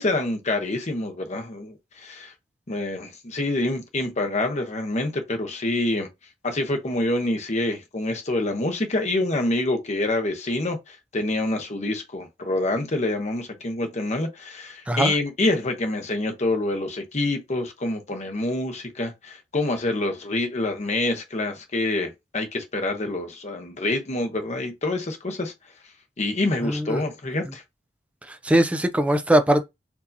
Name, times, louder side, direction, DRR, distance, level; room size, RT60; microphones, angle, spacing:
voice 1, 0.0-2.3 2.7-6.1 6.4-25.5 26.2-27.6, left 2 dB, 40° left, 0.9 m, -26 dB
voice 2, 26.6-27.0 28.4-29.6, right 1 dB, 5° right, 0.4 m, -20 dB
4.5 x 2.8 x 2.6 m
head